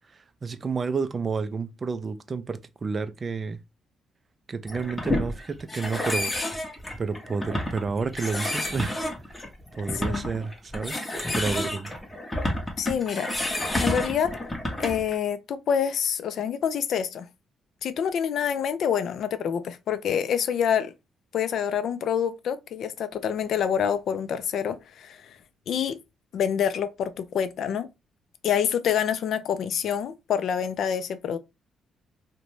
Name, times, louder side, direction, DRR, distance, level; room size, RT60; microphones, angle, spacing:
voice 1, 0.1-3.6 4.5-6.3 7.0-9.0 9.3-9.5 9.8-11.0 11.3-11.9, right 4 dB, 35° right, 0.3 m, -30 dB
sound 1, 4.7-15.1, left 1 dB, 15° left, 0.7 m, -30 dB
voice 2, 12.8-13.3 13.8-14.4 14.8-17.3 17.8-20.9 21.3-25.4 25.7-26.0 26.3-27.9 28.4-31.4, left 8 dB, 70° left, 0.3 m, -27 dB
2.6 x 2.1 x 3.0 m
cardioid pair, 90°, 0 cm